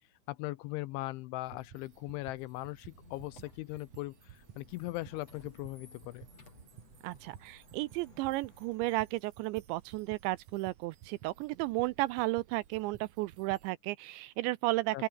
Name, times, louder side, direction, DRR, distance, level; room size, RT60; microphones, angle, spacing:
voice 1, 0.3-6.3 14.9-15.1, left 19 dB, 80° left, 2.9 m, -39 dB
sound 1, 1.4-13.7, right 10 dB, 65° right, 1.8 m, -55 dB
Squeak, 2.8-9.3, left 4 dB, 30° left, 6.0 m, -60 dB
voice 2, 7.0-15.1, right 20 dB, 85° right, 2.6 m, -33 dB
open air
omnidirectional pair, 5.8 m